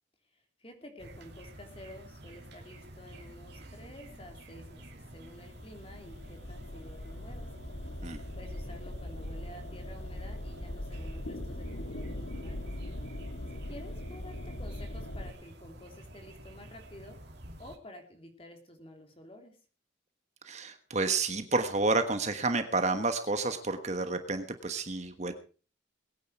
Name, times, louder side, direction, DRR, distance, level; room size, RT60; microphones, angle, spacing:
voice 1, 0.3-7.5 8.3-12.7 13.5-17.2 17.6-19.6, left 1 dB, 30° left, 4 dB, 3.1 m, -51 dB
sound 1, 1.0-17.8, right 1 dB, 55° right, 2.9 m, -50 dB
sound 2, 5.4-15.3, left 1 dB, 75° left, 1.9 m, -40 dB
voice 2, 20.4-25.3, right 3 dB, 35° right, 8 dB, 1.3 m, -30 dB
21.5 x 9.5 x 4.7 m, 0.38 s
head